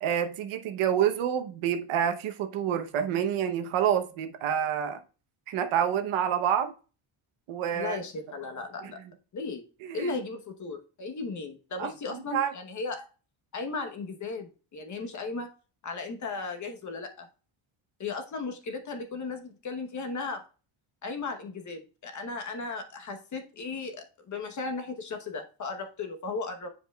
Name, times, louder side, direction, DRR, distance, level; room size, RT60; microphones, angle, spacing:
voice 1, 0.0-5.0 5.5-6.7 7.5-8.0 8.8-8.9 9.8-10.1 11.8-11.9 12.3-12.5, right 9 dB, 75° right, 1.0 m, -28 dB
voice 2, 7.7-9.0 9.3-9.6 9.9-13.1 13.5-15.5 15.8-17.3 18.0-20.4 21.0-26.7, left 4 dB, 35° left, 1.1 m, -36 dB
10.0 x 4.9 x 2.3 m
cardioid pair, 175°, 49 cm